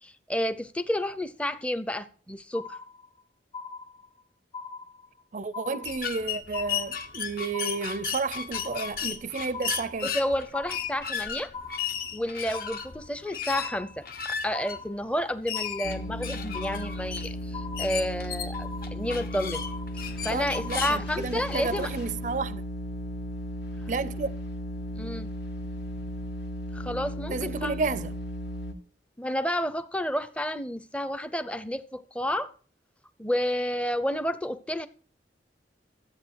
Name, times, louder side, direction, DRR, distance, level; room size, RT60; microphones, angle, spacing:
voice 1, 0.0-2.8 10.0-11.5 12.1-19.6 19.9-21.9 25.0-25.3 26.7-27.8 29.2-32.5 33.2-34.9, equal, 5° left, 0.5 m, -30 dB
sound 1, 2.5-3.2 3.5-4.2 4.5-5.2 5.5-6.2 6.5-7.2 7.5-8.2 8.5-9.2 9.5-10.2 10.5-11.2 11.5-12.2 12.5-13.2 13.5-14.2 14.5-15.2 15.5-16.2 16.5-17.2 17.5-18.2 18.5-19.2 19.5-20.2 20.5-21.2 21.5-22.2, left 4 dB, 35° left, 2.0 m, -41 dB
voice 2, 5.3-10.1 20.3-22.6 23.9-24.4 27.3-28.2, right 4 dB, 45° right, 0.4 m, -31 dB
sound 2, 5.8-21.0, left 7 dB, 55° left, 1.0 m, -35 dB
sound 3, 15.8-28.7, equal, 75° left, 2.1 m, -35 dB
14.0 x 8.2 x 4.6 m
head